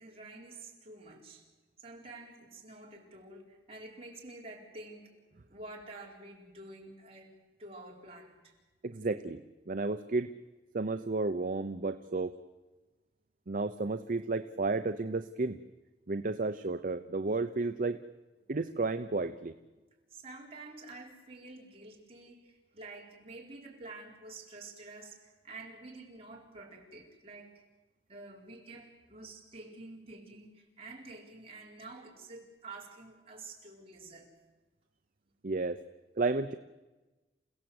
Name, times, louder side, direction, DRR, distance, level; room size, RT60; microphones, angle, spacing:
voice 1, 0.0-1.4 1.8-5.2 5.5-7.3 7.6-8.5 20.1-27.5 28.1-34.3, right 2 dB, 35° right, -2 dB, 4.6 m, -49 dB
voice 2, 8.8-9.4 9.7-10.3 10.7-12.3 13.5-15.6 16.1-18.0 18.5-19.5 35.4-35.8 36.2-36.5, right 3 dB, 50° right, 9 dB, 0.7 m, -32 dB
28.5 x 16.5 x 7.9 m, 1.2 s
head